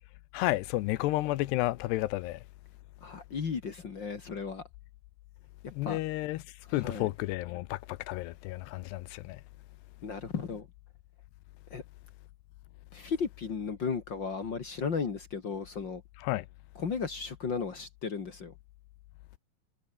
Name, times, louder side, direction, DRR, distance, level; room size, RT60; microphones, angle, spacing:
voice 1, 0.3-2.4 5.7-6.4 6.7-9.4 16.2-16.5, left 17 dB, 80° left, 2.8 m, -31 dB
voice 2, 3.0-4.6 5.8-6.0 6.7-7.1 10.0-10.7 11.7-11.8 12.9-16.0 16.7-18.5, left 5 dB, 45° left, 1.4 m, -35 dB
omnidirectional pair, 5.1 m